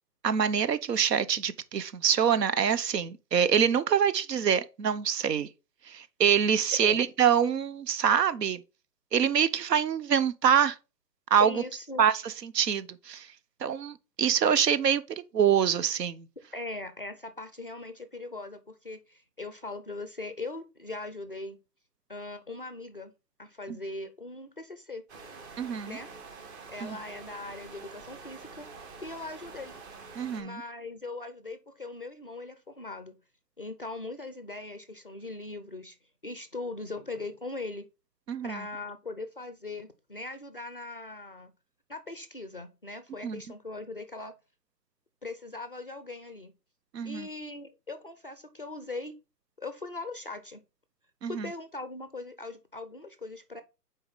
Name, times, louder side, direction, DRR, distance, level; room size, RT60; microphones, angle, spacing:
voice 1, 0.2-5.5 5.9-8.6 9.1-10.8 11.3-11.6 12.0-12.1 12.4-13.3 13.6-15.0 15.3-16.3 23.7-23.8 25.6-26.0 26.8-27.0 30.2-30.6 38.3-38.6 43.2-43.4 46.9-47.3 51.2-51.5, right 8 dB, 75° right, 0.9 m, -25 dB
voice 2, 11.4-12.1 16.5-21.6 22.1-23.1 23.4-25.0 25.9-26.1 26.7-28.7 29.0-29.7 30.4-33.2 33.6-36.0 36.2-37.9 38.4-41.5 41.9-44.3 45.2-46.5 47.0-49.2 49.6-50.6 51.2-53.6, left 2 dB, 35° left, 0.4 m, -40 dB
sound 1, 25.1-30.4, right 4 dB, 40° right, 1.9 m, -47 dB
6.4 x 4.3 x 3.9 m
hypercardioid pair, 150°, 50 cm